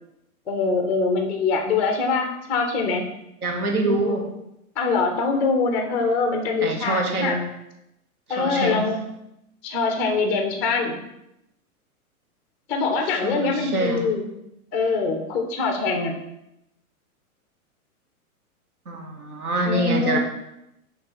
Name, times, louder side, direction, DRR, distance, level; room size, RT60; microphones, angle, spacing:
voice 1, 0.5-3.1 3.8-4.2 4.8-7.4 8.3-9.0 9.6-10.9 12.7-14.2 14.7-16.1 19.7-20.2, left 4 dB, 5° left, 3 dB, 0.3 m, -23 dB
voice 2, 3.4-4.3 6.6-7.5 8.3-8.9 13.1-14.1 18.9-20.2, right 1 dB, 80° right, 3 dB, 1.5 m, -25 dB
6.5 x 3.2 x 5.4 m, 0.84 s
hypercardioid pair, 115°, 44 cm